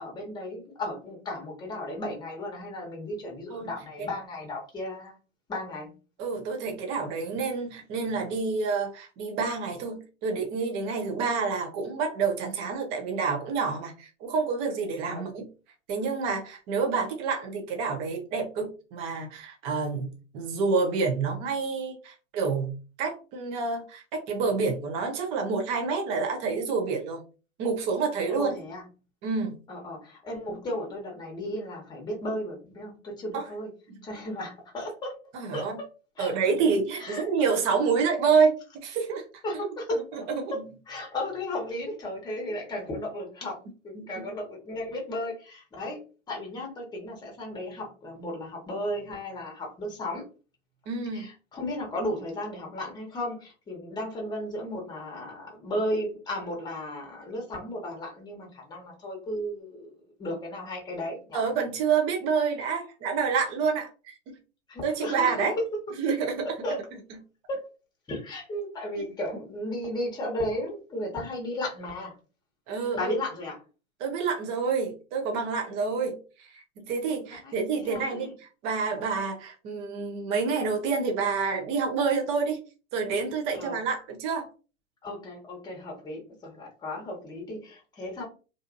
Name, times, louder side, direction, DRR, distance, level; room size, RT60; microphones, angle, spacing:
voice 1, 0.0-5.2 5.5-5.9 15.1-15.3 28.3-28.8 29.7-33.7 34.0-35.1 35.5-35.9 36.2-36.3 37.0-37.2 39.4-40.6 40.9-43.6 43.8-46.0 46.3-50.2 51.1-59.9 60.2-61.4 64.7-65.3 66.6-66.8 67.5-67.7 68.1-72.1 72.9-73.6 77.4-78.3 83.5-83.8 85.0-88.2, left 1 dB, 10° left, -1 dB, 0.9 m, -35 dB
voice 2, 6.2-15.5 15.9-22.7 23.0-27.2 27.6-28.5 29.2-29.6 33.3-33.5 33.9-34.0 35.3-35.8 36.2-38.6 38.8-39.2 40.1-40.5 43.9-44.2 50.9-51.3 61.3-64.2 64.8-65.5 66.0-66.5 69.0-69.1 72.7-73.2 74.0-78.3 78.6-82.6 82.9-84.5, right 5 dB, 15° right, 3 dB, 0.4 m, -28 dB
2.5 x 2.3 x 2.5 m, 0.34 s
hypercardioid pair, 115°, 40 cm